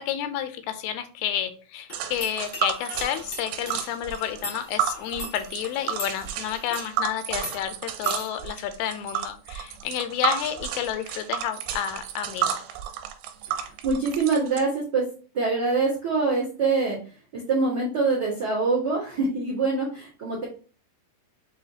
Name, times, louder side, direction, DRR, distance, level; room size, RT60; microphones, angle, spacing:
voice 1, 0.0-12.6, left 10 dB, 85° left, 9 dB, 2.4 m, -30 dB
sound 1, 1.9-6.9 7.3-7.6 8.0-8.3, left 1 dB, 45° left, 1.1 m, -40 dB
Tick, 1.9-14.6, right 10 dB, 85° right, 2.5 m, -31 dB
voice 2, 13.5-15.1 15.3-17.0 17.3-20.4, right 4 dB, 65° right, -6 dB, 1.0 m, -25 dB
6.6 x 2.7 x 2.7 m, 0.38 s
omnidirectional pair, 4.4 m